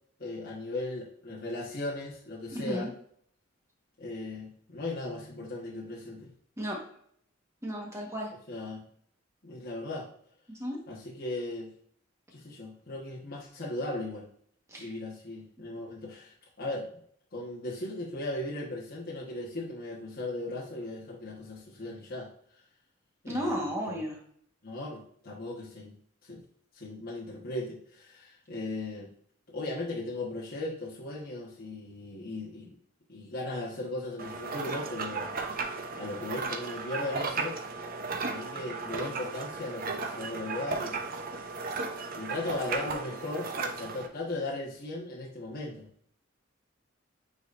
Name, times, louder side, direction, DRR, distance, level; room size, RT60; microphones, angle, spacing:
voice 1, 0.2-2.9 4.0-6.3 8.5-8.8 9.4-10.1 10.9-11.7 12.3-14.3 14.8-16.9 17.3-22.3 23.2-24.0 24.6-25.9 26.2-26.4 26.7-29.1 29.5-32.8 33.1-35.3 35.9-37.6 38.2-41.0 42.1-45.9, left 2 dB, 50° left, -5 dB, 1.3 m, -37 dB
voice 2, 2.5-2.9 6.6-6.8 7.6-8.3 10.5-10.8 14.7-14.9 23.3-24.2, equal, 15° right, -2 dB, 1.3 m, -33 dB
sound 1, 34.2-44.1, right 4 dB, 45° right, 0.7 m, -35 dB
9.0 x 4.1 x 2.6 m, 0.63 s
head